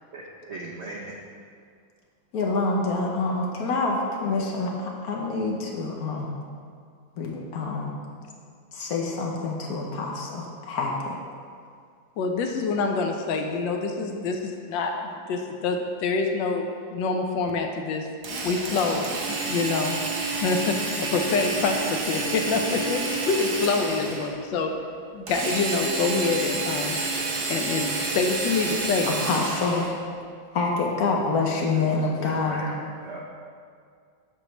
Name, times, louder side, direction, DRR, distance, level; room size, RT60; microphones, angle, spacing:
voice 1, 0.1-1.2 32.2-32.8 33.0-33.2, right 2 dB, 65° right, -4 dB, 0.6 m, -38 dB
voice 2, 2.3-6.3 7.2-7.9 8.7-11.2 29.1-29.9 30.5-32.6, left 3 dB, 60° left, -1 dB, 1.1 m, -27 dB
voice 3, 12.2-16.6 16.9-18.1 18.4-19.1 19.4-20.0 20.4-24.7 25.1-27.0 27.5-29.1, left 4 dB, 75° left, 4 dB, 1.3 m, -26 dB
Drill, 18.2-24.3 25.3-29.9, right 3 dB, 90° right, 1.8 m, -29 dB
7.9 x 3.2 x 6.3 m, 2.2 s
omnidirectional pair, 2.1 m